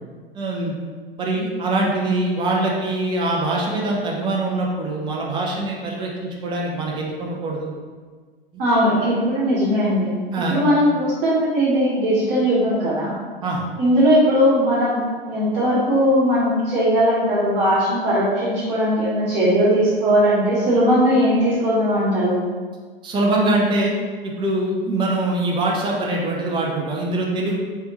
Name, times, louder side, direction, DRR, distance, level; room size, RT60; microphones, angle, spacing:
voice 1, 0.3-0.7 1.2-7.7 10.3-10.6 13.4-13.6 23.0-23.9 24.2-27.6, right 2 dB, 15° right, -2 dB, 0.7 m, -23 dB
voice 2, 8.6-10.2 10.5-13.1 13.8-15.0 15.3-22.4, equal, 40° right, -9 dB, 1.3 m, -19 dB
4.3 x 3.4 x 3.0 m, 1.5 s
figure-of-eight pair, 100°, 29 cm